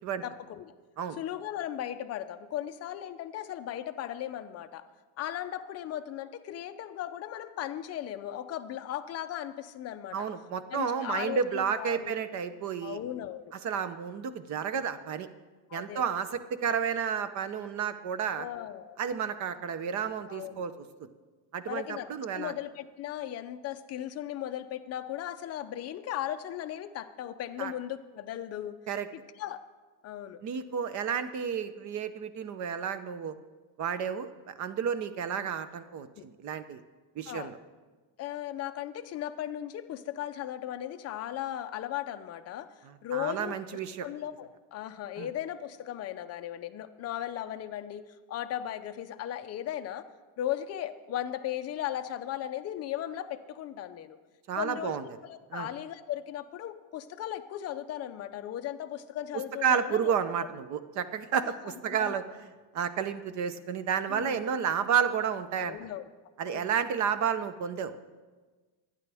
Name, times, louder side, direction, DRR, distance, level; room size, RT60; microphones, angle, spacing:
voice 1, 0.2-0.7 1.2-4.8 5.2-10.3 10.7-12.1 12.8-13.5 15.7-16.0 18.4-19.0 20.3-20.7 21.7-22.1 22.3-28.7 29.4-29.6 30.0-30.4 37.3-37.5 38.2-42.7 43.0-43.5 44.0-48.0 48.3-50.0 50.4-54.2 54.6-60.1 61.9-62.2 64.1-64.4 65.6-66.0 66.5-66.8, left 11 dB, 30° left, 8 dB, 0.5 m, -37 dB
voice 2, 10.1-13.0 13.5-15.3 15.7-18.5 19.0-20.8 21.5-22.5 27.6-27.7 28.9-29.1 30.4-33.3 33.8-36.8 37.2-37.6 42.8-44.1 45.2-45.3 54.5-55.1 55.5-55.7 59.3-62.2 62.7-65.8 66.4-67.9, right 7 dB, 35° right, 12 dB, 0.6 m, -31 dB
25.5 x 9.9 x 3.4 m, 1.3 s
cardioid pair, 180°, 50 cm